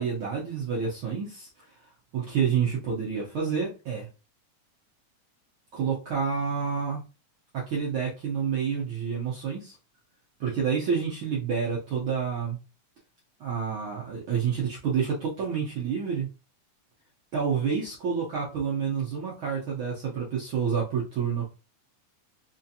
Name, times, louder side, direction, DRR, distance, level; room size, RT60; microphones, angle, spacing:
voice 1, 0.0-1.5 2.1-4.1 5.7-7.0 7.5-9.7 10.4-12.6 13.4-16.3 17.3-21.5, right 6 dB, 80° right, -4 dB, 1.1 m, -28 dB
4.9 x 2.5 x 2.7 m, 0.31 s
omnidirectional pair, 3.6 m